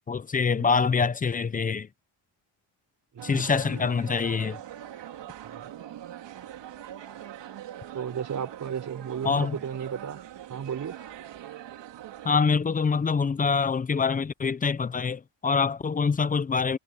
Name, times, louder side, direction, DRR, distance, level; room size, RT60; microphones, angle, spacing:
voice 1, 0.1-1.9 3.2-4.6 9.2-9.6 12.2-16.8, left 5 dB, 20° left, 0.4 m, -25 dB
voice 2, 3.1-3.5 5.4-5.7 7.9-10.2 10.5-11.0, right 8 dB, 40° right, 5.3 m, -34 dB
sound 1, 3.2-12.4, right 11 dB, 65° right, 3.2 m, -42 dB
cardioid pair, 160°, 46 cm